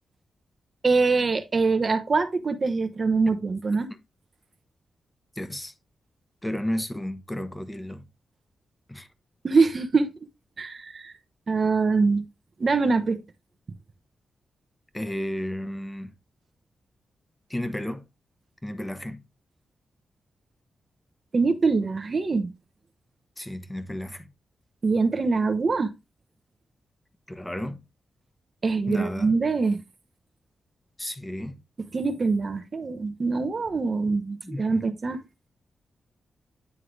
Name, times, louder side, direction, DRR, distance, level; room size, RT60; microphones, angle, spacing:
voice 1, 0.8-3.9 9.4-10.1 10.6-11.1 11.5-12.2 12.6-13.2 21.3-22.5 24.8-25.9 28.6-29.8 31.9-35.2, right 4 dB, 45° right, 0.9 m, -24 dB
voice 2, 5.4-5.7 6.4-8.1 8.9-9.1 14.9-16.2 17.5-18.1 18.6-19.2 23.4-24.3 27.3-27.8 28.9-29.4 31.0-31.6 34.4-34.9, left 1 dB, 10° left, 0.9 m, -33 dB
9.5 x 3.7 x 3.2 m
cardioid pair, 90°, 0 cm